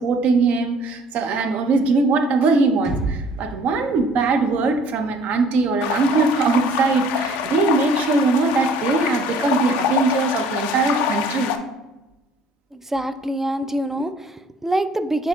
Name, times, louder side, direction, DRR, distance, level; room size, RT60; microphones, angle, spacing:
voice 1, 0.0-11.6, right 3 dB, 55° right, 6 dB, 0.7 m, -20 dB
sound 1, 2.8-6.8, right 2 dB, 70° right, 1.2 m, -33 dB
sound 2, 5.8-11.6, left 8 dB, 70° left, 0.4 m, -25 dB
voice 2, 12.7-15.3, right 1 dB, 10° right, 11 dB, 0.3 m, -25 dB
6.9 x 2.9 x 2.4 m, 1.0 s
hypercardioid pair, 70°, 3 cm